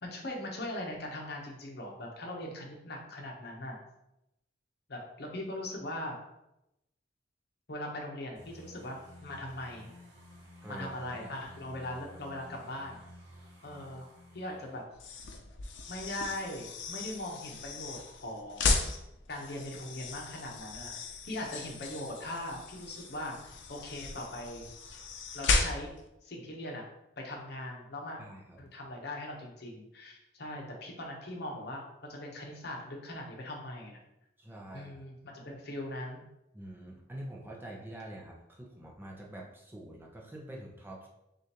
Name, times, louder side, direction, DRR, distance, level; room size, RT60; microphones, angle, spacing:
voice 1, 0.0-3.8 4.9-6.2 7.7-9.9 10.7-13.0 13.6-14.1 14.3-14.8 15.9-18.9 19.3-21.0 21.2-24.7 25.3-25.9 26.2-26.8 27.2-28.2 28.6-34.0 34.7-36.2, left 1 dB, 60° left, 0 dB, 1.0 m, -40 dB
sound 1, 8.3-14.8, left 1 dB, 90° right, 1.3 m, -53 dB
voice 2, 10.6-11.3 28.2-28.6 34.4-35.0 36.5-41.1, right 1 dB, 10° right, -1 dB, 0.6 m, -46 dB
sound 2, 14.9-26.1, left 3 dB, 75° left, 0.6 m, -35 dB
6.4 x 2.5 x 2.9 m, 0.88 s
head